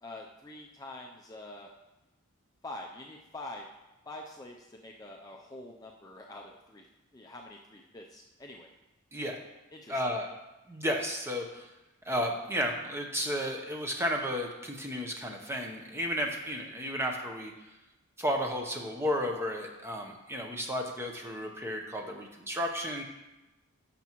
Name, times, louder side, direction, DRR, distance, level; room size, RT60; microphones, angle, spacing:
voice 1, 0.0-1.7 2.6-3.7 4.1-6.9 7.1-8.7 9.7-10.0, left 2 dB, 15° left, 0 dB, 0.4 m, -45 dB
voice 2, 9.9-10.3 10.7-11.7 12.1-17.5 18.2-23.0, equal, 10° right, 2 dB, 0.8 m, -33 dB
12.0 x 6.9 x 3.0 m, 1.0 s
head